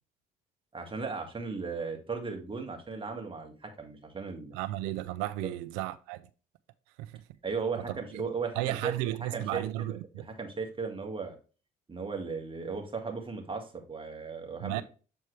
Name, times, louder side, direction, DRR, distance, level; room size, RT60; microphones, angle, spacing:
voice 1, 0.7-4.5 5.4-5.5 7.4-10.0 10.4-11.4 11.9-14.8, right 4 dB, 30° right, 1.9 m, -36 dB
voice 2, 4.5-6.3 7.0-7.2 7.8-8.2 8.6-10.3 14.6-14.8, right 16 dB, 85° right, 0.4 m, -34 dB
7.6 x 4.5 x 3.2 m
hypercardioid pair, 55°, 19 cm